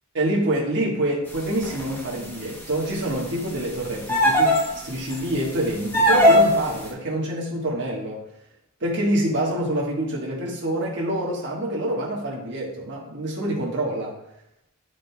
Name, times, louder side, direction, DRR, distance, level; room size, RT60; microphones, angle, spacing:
voice 1, 0.1-8.2 8.8-14.2, right 1 dB, 55° right, -3 dB, 1.3 m, -26 dB
sound 1, 1.6-2.0 4.1-4.7 5.1-5.2 5.9-6.6, equal, 10° left, 0.9 m, -17 dB
8.9 x 5.0 x 2.3 m, 0.85 s
head